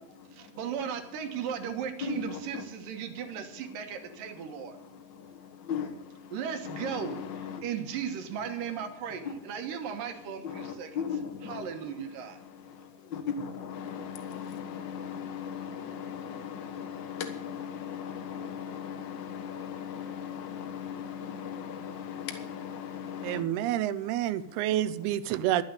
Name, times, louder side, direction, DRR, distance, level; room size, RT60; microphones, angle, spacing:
voice 1, 0.3-4.8 6.3-7.2 7.6-10.9 11.4-12.4, right 8 dB, 70° right, 2.8 m, -36 dB
voice 2, 2.0-2.6 5.7-5.9 6.6-7.6 10.4-11.6 13.1-23.4, left 7 dB, 85° left, 1.0 m, -37 dB
voice 3, 23.2-25.6, right 12 dB, 85° right, 2.6 m, -28 dB
12.5 x 8.0 x 8.5 m
omnidirectional pair, 4.5 m